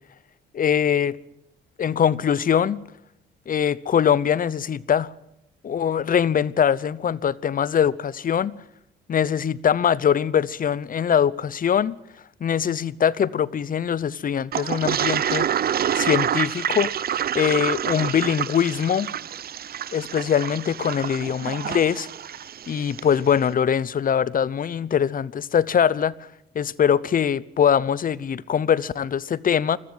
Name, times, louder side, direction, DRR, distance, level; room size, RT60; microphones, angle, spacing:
voice 1, 0.5-1.2 1.8-2.8 3.5-5.1 5.6-8.6 9.1-12.0 12.4-15.5 15.9-19.1 19.9-22.1 22.7-26.1 26.5-29.8, left 8 dB, 45° left, 0.8 m, -22 dB
Toilet flush, 14.5-23.1, right 9 dB, 50° right, 0.7 m, -27 dB
22.0 x 14.0 x 9.6 m
cardioid pair, 90°, 20 cm